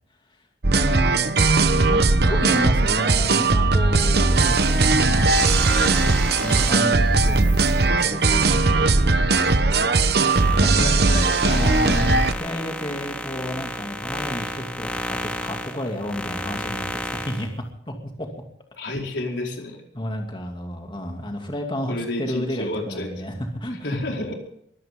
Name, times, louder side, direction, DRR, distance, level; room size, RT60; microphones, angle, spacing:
sound 1, 0.6-12.3, right 3 dB, 65° right, 1.0 m, -19 dB
voice 1, 0.7-1.3 1.7-10.1 10.6-18.3 19.9-24.3, equal, 30° left, 2 dB, 2.6 m, -31 dB
sound 2, 4.1-9.2 9.6-17.5, left 1 dB, 5° left, 2.2 m, -33 dB
voice 2, 10.7-11.6 18.8-19.8 21.9-23.2 23.8-24.3, left 2 dB, 90° left, 1 dB, 4.6 m, -30 dB
23.0 x 16.0 x 3.8 m, 0.73 s
head